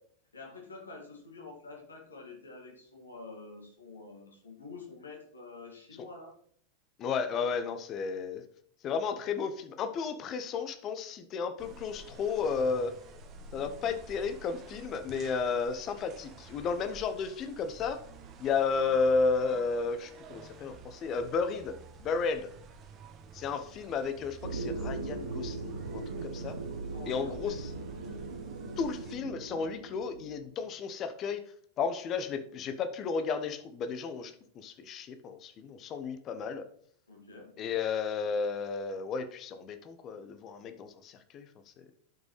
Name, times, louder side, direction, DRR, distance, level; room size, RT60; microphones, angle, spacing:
voice 1, 0.3-6.3 26.9-27.6 28.1-28.2 37.1-37.5, left 3 dB, 75° left, 1 dB, 2.0 m, -47 dB
voice 2, 7.0-8.4 8.8-12.9 13.5-18.0 18.4-21.8 22.0-22.5 23.3-26.6 27.1-27.6 28.8-31.4 31.8-36.6 37.6-41.5 41.8-41.9, left 5 dB, 30° left, 9 dB, 0.8 m, -33 dB
sound 1, 11.6-29.2, right 3 dB, 35° right, 1.2 m, -51 dB
sound 2, 24.4-30.4, right 3 dB, 75° right, 0.8 m, -39 dB
12.0 x 5.2 x 3.2 m, 0.62 s
figure-of-eight pair, 90°, 0 cm